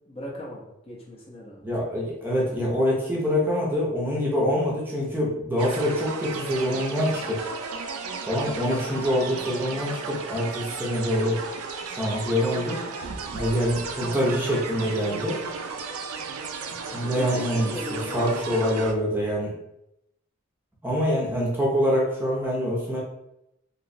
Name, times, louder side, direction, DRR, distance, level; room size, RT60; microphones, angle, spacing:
voice 1, 0.0-1.7 8.3-8.5 13.3-13.6 16.9-18.3, left 1 dB, 30° left, -3 dB, 0.6 m, -39 dB
voice 2, 1.6-7.4 8.3-11.4 11.9-12.8 13.3-15.4 16.9-19.5 20.8-23.0, equal, 10° right, -4 dB, 0.6 m, -25 dB
sound 1, 5.6-18.9, right 4 dB, 85° right, 0.4 m, -34 dB
3.0 x 2.8 x 2.6 m, 0.83 s
head